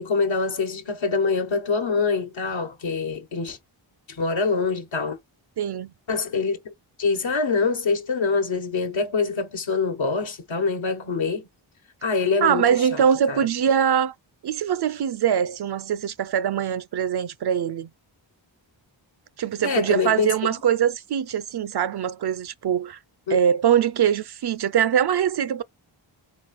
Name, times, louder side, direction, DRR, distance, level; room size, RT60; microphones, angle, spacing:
voice 1, 0.0-3.6 4.1-5.2 6.1-6.7 7.0-11.5 12.0-12.6 12.9-13.0 13.3-13.4 19.6-20.5 23.3-23.4, left 4 dB, 70° left, 1.2 m, -25 dB
voice 2, 5.6-5.9 12.4-14.1 14.4-17.9 19.4-23.0 23.3-25.6, right 8 dB, 55° right, 0.5 m, -22 dB
4.1 x 3.0 x 4.1 m
wide cardioid pair, 65°, 48 cm